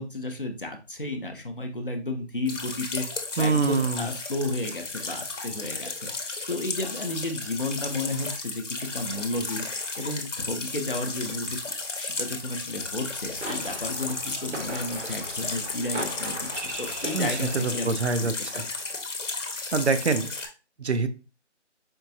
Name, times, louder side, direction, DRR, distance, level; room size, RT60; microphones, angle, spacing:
voice 1, 0.0-3.1 3.4-9.7 10.0-11.6 12.0-18.7, left 2 dB, 50° left, 4 dB, 0.6 m, -33 dB
sound 1, 2.5-20.5, left 3 dB, 90° left, 0.9 m, -34 dB
voice 2, 3.4-4.0 17.1-17.3 17.5-18.6 19.7-20.3 20.8-21.1, right 4 dB, 65° right, 10 dB, 0.5 m, -25 dB
sound 2, 13.0-18.1, right 2 dB, 85° right, 1.0 m, -38 dB
4.5 x 2.4 x 2.6 m, 0.31 s
figure-of-eight pair, 180°, 35 cm